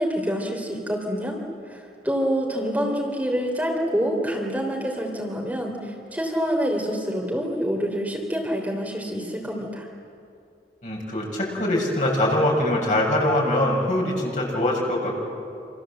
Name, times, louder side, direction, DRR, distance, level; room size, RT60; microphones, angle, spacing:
voice 1, 0.0-1.4 1.7-9.9, equal, 10° right, -1 dB, 3.1 m, -26 dB
voice 2, 10.8-15.1, left 1 dB, 45° left, -2 dB, 7.1 m, -23 dB
27.5 x 27.0 x 7.8 m, 2.5 s
head